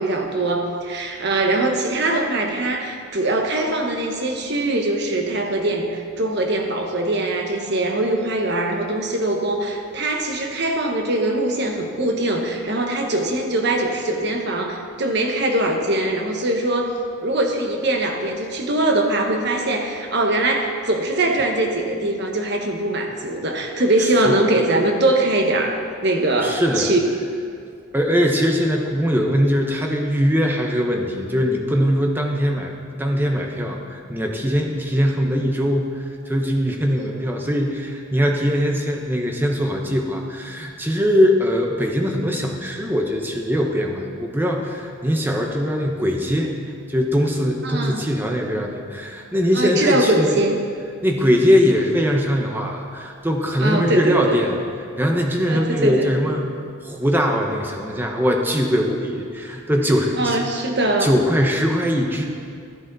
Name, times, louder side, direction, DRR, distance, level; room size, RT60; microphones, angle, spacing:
voice 1, 0.0-27.0 37.0-37.2 47.6-48.0 49.5-50.6 53.6-54.4 55.5-56.1 60.2-61.1, right 2 dB, 55° right, 3 dB, 1.2 m, -22 dB
voice 2, 24.0-24.4 26.4-26.9 27.9-50.4 51.0-54.6 55.0-56.5 56.8-60.5 61.0-62.3, equal, 10° right, 1 dB, 0.9 m, -21 dB
13.0 x 10.5 x 4.0 m, 2.3 s
head